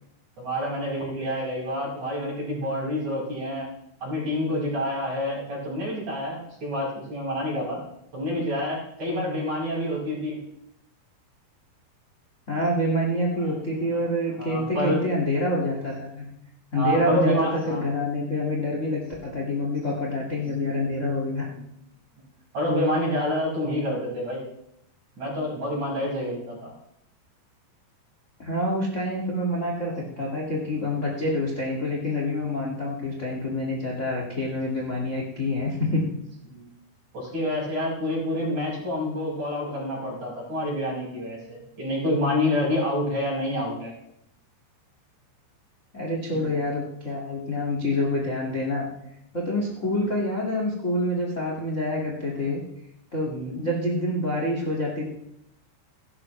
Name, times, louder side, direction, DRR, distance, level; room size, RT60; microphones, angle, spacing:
voice 1, 0.4-3.7 4.0-7.8 8.1-10.4 13.4-13.5 14.4-15.0 16.7-17.9 22.5-24.4 25.2-26.7 30.0-30.2 36.5-36.7 37.1-43.9 46.3-46.5 49.8-50.0 53.3-53.6, left 1 dB, 40° right, -4 dB, 7.0 m, -28 dB
voice 2, 12.5-16.3 16.7-21.5 28.4-36.0 45.9-48.9 49.3-52.6 53.1-55.0, left 1 dB, 40° left, -2 dB, 1.0 m, -27 dB
17.0 x 13.0 x 3.3 m, 0.77 s
omnidirectional pair, 5.4 m